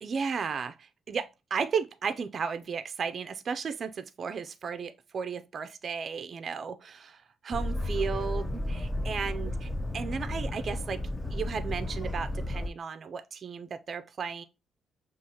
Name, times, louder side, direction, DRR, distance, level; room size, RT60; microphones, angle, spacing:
voice 1, 0.0-11.0 11.3-14.4, right 6 dB, 50° right, 0.4 m, -34 dB
Boat Water vehicle, 7.5-12.7, left 1 dB, 15° left, 0.5 m, -33 dB
6.1 x 2.4 x 2.8 m
cardioid pair, 90°, 0 cm